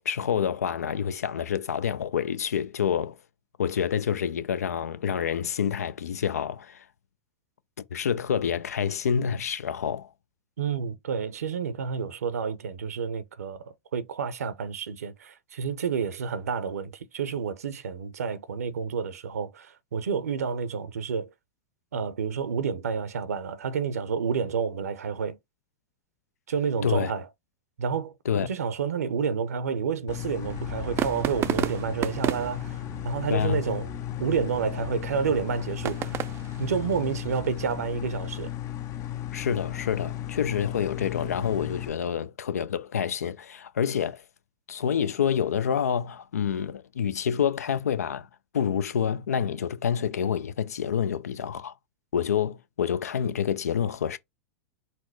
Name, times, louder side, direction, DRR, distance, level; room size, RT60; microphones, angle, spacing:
voice 1, 0.1-3.2 3.6-6.8 7.9-10.1 26.8-27.1 28.3-28.5 33.3-33.6 39.3-44.2 44.7-48.3 48.5-51.7 52.1-54.2, left 8 dB, 85° left, 0.4 m, -27 dB
voice 2, 10.6-21.3 21.9-25.4 26.5-27.3 27.8-33.9 34.2-36.2 36.6-38.5, right 6 dB, 85° right, 0.6 m, -30 dB
sound 1, 30.1-41.9, left 12 dB, 40° left, 0.5 m, -35 dB
sound 2, 30.4-37.7, right 12 dB, 30° right, 0.4 m, -34 dB
4.2 x 2.0 x 4.5 m
hypercardioid pair, 105°, 8 cm